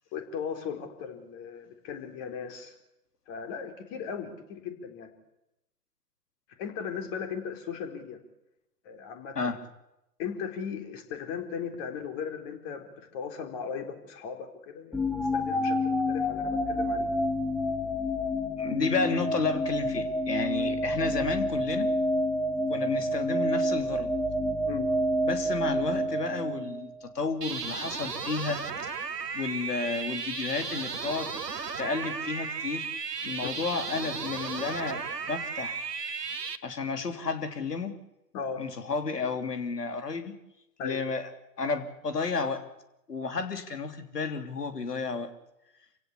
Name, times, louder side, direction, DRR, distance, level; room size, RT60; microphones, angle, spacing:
voice 1, 0.1-2.8 3.3-5.1 6.6-8.2 8.8-9.5 10.2-17.1 20.6-20.7 24.6-24.9 33.4-33.6 38.3-38.6 40.8-41.0, left 7 dB, 35° left, 6 dB, 3.9 m, -37 dB
sound 1, 14.9-27.0, equal, ahead, 0.8 m, -28 dB
voice 2, 18.6-21.9 22.7-24.1 25.2-28.9 29.3-31.3 31.8-32.9 33.2-35.8 36.6-37.9 38.6-40.3 40.8-41.3 41.6-42.6 43.1-45.3, left 4 dB, 80° left, 8 dB, 3.2 m, -32 dB
sound 2, 27.4-36.6, right 5 dB, 90° right, 1.6 m, -35 dB
27.5 x 16.5 x 8.5 m, 0.91 s
figure-of-eight pair, 125°, 47 cm